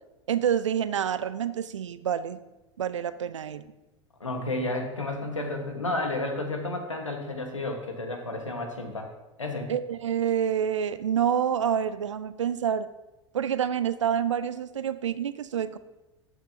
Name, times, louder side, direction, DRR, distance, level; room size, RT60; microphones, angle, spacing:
voice 1, 0.3-2.4 2.8-3.6 9.7-12.9 13.3-15.8, right 8 dB, 80° right, 14 dB, 0.4 m, -27 dB
voice 2, 4.2-9.1 9.4-9.7, left 2 dB, 90° left, 4 dB, 1.2 m, -31 dB
12.5 x 6.0 x 2.7 m, 1.0 s
figure-of-eight pair, 80°, 16 cm